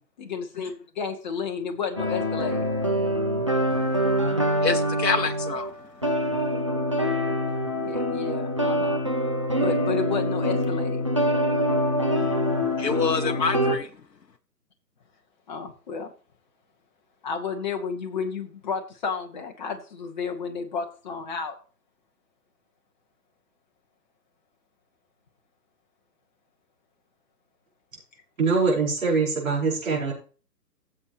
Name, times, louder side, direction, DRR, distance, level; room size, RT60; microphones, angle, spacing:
voice 1, 0.2-2.7 7.7-9.0 9.6-11.1 15.5-16.1 17.2-21.6, left 5 dB, 25° left, 1.3 m, -32 dB
sound 1, 2.0-5.7 6.0-13.8, equal, 20° right, 0.5 m, -25 dB
voice 2, 3.7-5.8 12.2-12.3 12.8-14.0, left 5 dB, 75° left, 0.9 m, -28 dB
voice 3, 28.4-30.1, right 4 dB, 50° right, 4.9 m, -23 dB
14.5 x 7.5 x 3.0 m
figure-of-eight pair, 140°, 50 cm